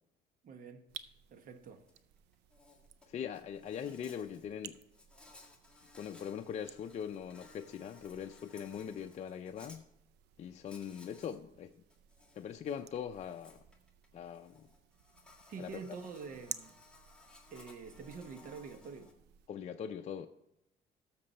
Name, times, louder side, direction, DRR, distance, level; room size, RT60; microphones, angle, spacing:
voice 1, 0.4-0.8 1.3-1.9 15.5-16.8 17.5-19.1, right 5 dB, 55° right, 1.1 m, -46 dB
sound 1, 0.9-19.5, right 12 dB, 85° right, 0.6 m, -55 dB
Insect, 1.9-2.0 2.3-9.8 10.6-11.4 11.7-19.1, left 3 dB, 5° left, 1.7 m, -60 dB
voice 2, 3.1-4.8 5.9-9.8 10.4-11.7 12.4-13.6 14.1-14.7 15.6-15.7 19.5-20.3, left 8 dB, 45° left, 0.5 m, -41 dB
13.0 x 6.7 x 4.2 m
cardioid pair, 110°, 17 cm